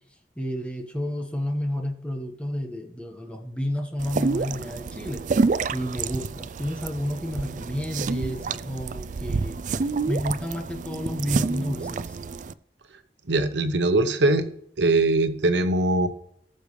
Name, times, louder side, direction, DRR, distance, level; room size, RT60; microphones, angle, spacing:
voice 1, 0.4-5.3 5.7-9.6 10.1-12.2, equal, 5° left, 3 dB, 1.4 m, -31 dB
sound 1, 4.0-12.5, right 4 dB, 45° right, 0.4 m, -28 dB
voice 2, 13.3-14.5 14.8-16.1, right 2 dB, 85° right, 10 dB, 0.9 m, -21 dB
19.5 x 6.5 x 3.3 m, 0.72 s
head